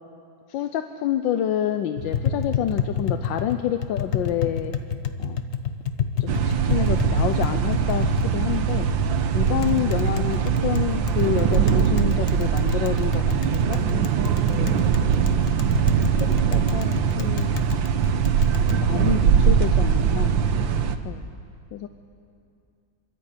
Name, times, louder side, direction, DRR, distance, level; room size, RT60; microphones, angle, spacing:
voice 1, 0.5-4.7 5.2-5.4 6.2-8.9 9.3-13.2 13.5-13.8 14.5-14.7 16.1-17.6 18.8-20.3 21.0-21.3 21.7-21.9, left 10 dB, 75° left, 8 dB, 1.4 m, -28 dB
Tap, 2.0-18.8, left 7 dB, 50° left, 0.9 m, -30 dB
sound 1, 6.3-21.0, right 7 dB, 75° right, 1.6 m, -21 dB
26.5 x 13.0 x 8.4 m, 2.4 s
omnidirectional pair, 2.1 m